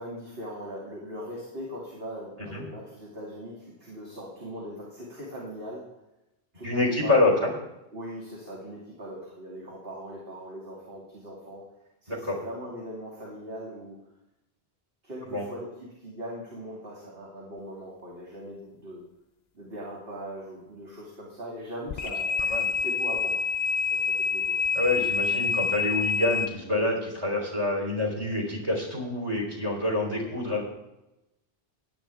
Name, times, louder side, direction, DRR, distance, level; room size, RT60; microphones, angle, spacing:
voice 1, 0.0-5.9 6.5-7.6 7.9-11.6 12.0-14.0 15.0-19.0 19.5-23.5 23.8-25.0 25.9-26.1, equal, 60° right, -5 dB, 2.8 m, -40 dB
voice 2, 6.6-7.5 12.1-12.4 15.3-15.4 22.5-22.7 24.7-30.6, left 2 dB, 25° right, 0 dB, 3.7 m, -26 dB
sound 1, 21.9-26.5, left 6 dB, 55° left, 0.5 m, -27 dB
16.5 x 10.5 x 3.5 m, 0.93 s
omnidirectional pair, 1.1 m